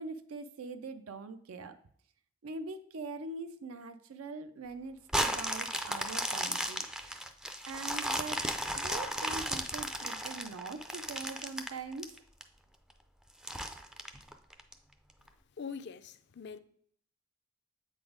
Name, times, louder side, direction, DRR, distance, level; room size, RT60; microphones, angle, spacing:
voice 1, 0.0-1.8 2.4-6.8 7.7-8.5 8.7-12.2, right 3 dB, 80° right, 0.5 m, -43 dB
sound 1, 5.1-12.4 12.9-13.0 13.4-14.7 15.3-15.4, right 1 dB, 5° right, 0.4 m, -35 dB
voice 2, 15.6-16.6, left 6 dB, 55° left, 0.5 m, -43 dB
7.7 x 4.1 x 4.8 m
head